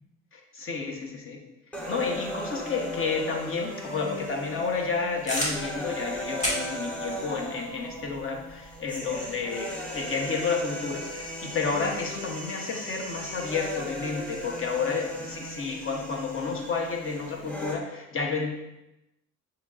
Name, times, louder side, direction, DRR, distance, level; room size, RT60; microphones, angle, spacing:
voice 1, 0.3-1.4 1.9-18.5, left 4 dB, 45° left, 1 dB, 0.9 m, -31 dB
sound 1, 1.7-17.7, equal, 5° left, 0.9 m, -37 dB
sound 2, 5.3-10.0, equal, 25° left, 1.5 m, -36 dB
6.7 x 2.8 x 2.5 m, 0.92 s
cardioid pair, 90°, 30 cm